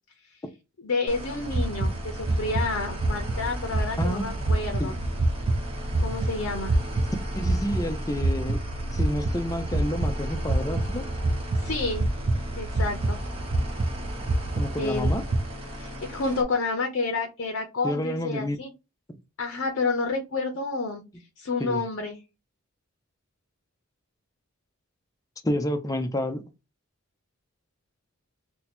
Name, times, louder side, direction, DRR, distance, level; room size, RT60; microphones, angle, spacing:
voice 1, 0.8-4.9 6.0-6.8 11.6-12.1 12.6-13.2 14.8-15.1 15.7-18.7 19.4-21.0 21.4-22.2, left 3 dB, 60° left, 0.6 m, -29 dB
sound 1, 1.1-16.4, equal, 25° right, 0.9 m, -37 dB
sound 2, 1.5-15.5, right 2 dB, 50° right, 0.5 m, -27 dB
voice 2, 4.0-4.5 4.8-4.9 6.1-6.2 7.3-8.6 8.9-11.1 14.6-15.2 17.8-18.6 21.6-21.8 25.4-26.4, left 1 dB, 15° left, 0.4 m, -29 dB
2.8 x 2.2 x 4.1 m
head